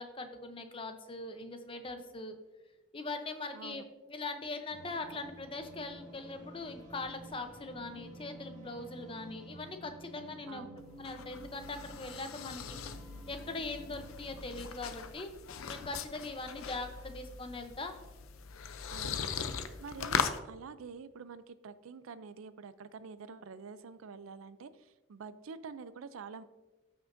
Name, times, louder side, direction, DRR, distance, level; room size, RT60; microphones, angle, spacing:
voice 1, 0.0-2.4 2.9-3.8 4.1-10.7 11.0-12.8 13.3-15.3 15.7-18.0, left 3 dB, 25° left, 7 dB, 0.7 m, -41 dB
voice 2, 3.5-3.9 10.5-10.8 18.9-19.4 19.8-26.4, right 5 dB, 85° right, 14 dB, 0.4 m, -47 dB
sound 1, 4.7-14.7, right 1 dB, 35° right, 1.8 m, -52 dB
sound 2, 10.8-20.4, left 6 dB, 90° left, 0.6 m, -39 dB
14.0 x 5.9 x 2.6 m, 1.1 s
head